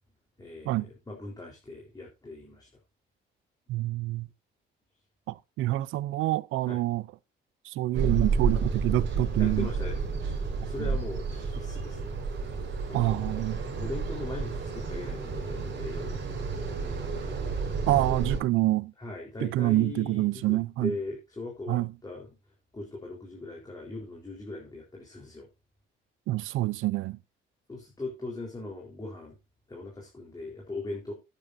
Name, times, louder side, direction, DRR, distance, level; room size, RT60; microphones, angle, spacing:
voice 1, 0.4-2.7 6.7-6.8 9.4-12.1 12.9-16.2 19.0-22.3 22.7-25.5 27.7-29.3 29.7-31.1, left 2 dB, 20° left, 4.0 m, -40 dB
voice 2, 3.7-4.3 5.3-7.1 7.6-9.7 10.8-10.9 12.9-13.6 17.9-18.9 19.4-20.9 21.7-21.9 26.3-27.2, right 17 dB, 90° right, 0.5 m, -27 dB
sound 1, 7.9-18.4, right 4 dB, 65° right, 5.1 m, -31 dB
12.0 x 9.9 x 2.7 m
cardioid pair, 90°, 20 cm